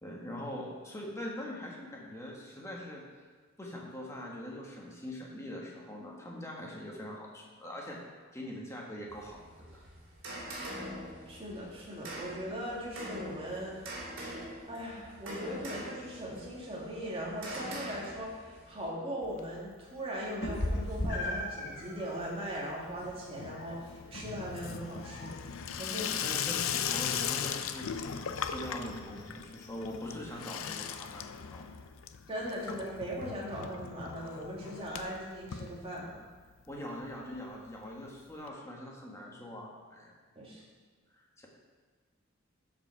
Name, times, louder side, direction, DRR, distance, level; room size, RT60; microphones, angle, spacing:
voice 1, 0.0-3.0 3.6-8.0 8.3-9.8 25.8-31.7 32.7-32.8 36.7-40.1 41.1-41.5, left 1 dB, 15° left, -2 dB, 1.5 m, -43 dB
sound 1, 9.1-18.9, right 1 dB, 75° right, 2.6 m, -44 dB
voice 2, 11.3-13.8 14.1-14.2 14.7-25.4 25.8-26.1 32.3-36.2 40.4-40.6, equal, 30° right, -4 dB, 2.1 m, -39 dB
Water tap faucet / Sink (filling or washing), 19.2-20.0 20.3-20.8 21.1-36.4 36.7-36.8 37.0-37.1 37.3-37.4 38.5-38.6, left 8 dB, 90° left, 0.5 m, -39 dB
Meow, 20.4-30.1, left 1 dB, 55° left, 1.2 m, -41 dB
12.5 x 5.2 x 4.6 m, 1.4 s
head